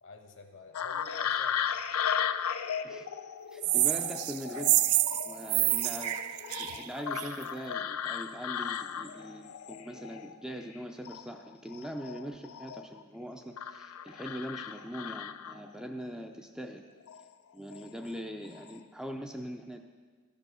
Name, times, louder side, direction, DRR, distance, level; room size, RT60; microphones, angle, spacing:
voice 1, 0.0-1.9 5.9-6.0, left 3 dB, 55° left, 4 dB, 1.1 m, -47 dB
sound 1, 0.7-10.8 11.0-13.0 13.6-15.8 17.0-17.2 17.7-18.2 18.4-18.7, left 8 dB, 85° left, 0.4 m, -36 dB
voice 2, 3.5-4.8 5.2-16.8 17.5-19.8, equal, 5° right, 3 dB, 0.4 m, -42 dB
sound 2, 3.6-7.4, right 16 dB, 80° right, 0.3 m, -28 dB
13.0 x 5.3 x 6.2 m, 1.5 s
head